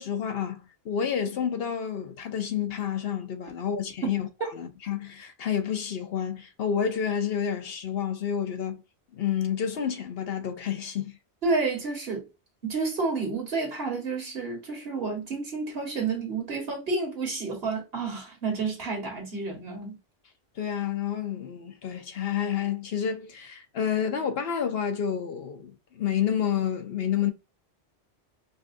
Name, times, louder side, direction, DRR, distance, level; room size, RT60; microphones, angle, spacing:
voice 1, 0.0-4.3 4.5-8.8 9.1-11.2 20.6-27.3, left 8 dB, 70° left, 0.9 m, -29 dB
voice 2, 11.4-12.3 12.6-20.0, right 4 dB, 65° right, 1.7 m, -30 dB
5.2 x 2.4 x 2.6 m
omnidirectional pair, 1.1 m